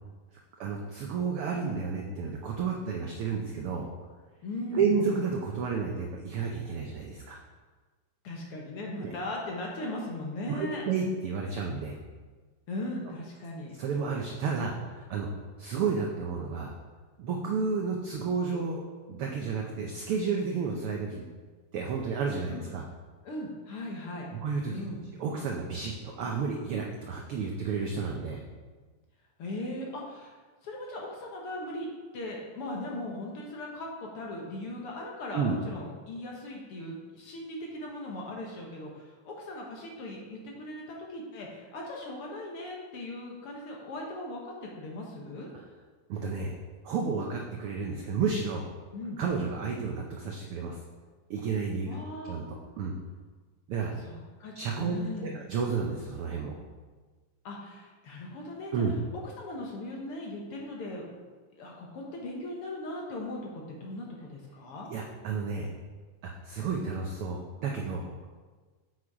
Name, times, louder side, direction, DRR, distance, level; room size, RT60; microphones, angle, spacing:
voice 1, 0.6-3.9 4.7-7.4 9.0-9.1 10.5-12.0 13.8-15.3 15.6-16.7 17.2-18.8 19.1-21.2 21.7-22.8 24.4-24.8 25.2-28.4 35.3-35.5 46.1-46.5 46.8-48.7 49.2-50.8 51.3-51.9 52.2-52.9 53.7-53.9 54.5-56.5 58.7-59.0 64.9-65.7 66.4-68.1, right 5 dB, 80° right, 1 dB, 1.2 m, -31 dB
voice 2, 4.4-5.0 8.2-10.8 12.7-13.8 22.5-22.6 23.2-24.3 24.7-25.0 29.4-30.3 30.6-31.9 32.1-45.5 48.9-49.2 51.8-52.4 54.0-55.4 57.4-58.8 59.4-61.1 61.5-64.9, left 1 dB, 60° left, -1 dB, 1.8 m, -38 dB
8.2 x 6.2 x 4.8 m, 1.4 s
omnidirectional pair, 3.4 m